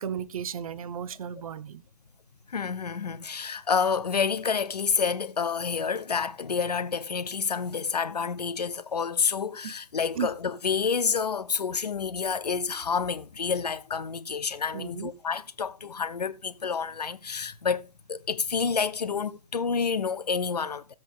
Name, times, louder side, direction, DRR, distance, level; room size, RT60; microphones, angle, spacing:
voice 1, 0.0-1.8 9.6-9.7 10.2-10.3 14.7-15.1, right 8 dB, 60° right, 1.0 m, -34 dB
voice 2, 2.5-20.9, left 6 dB, 85° left, 1.1 m, -29 dB
15.5 x 7.9 x 3.6 m
hypercardioid pair, 135°, 20 cm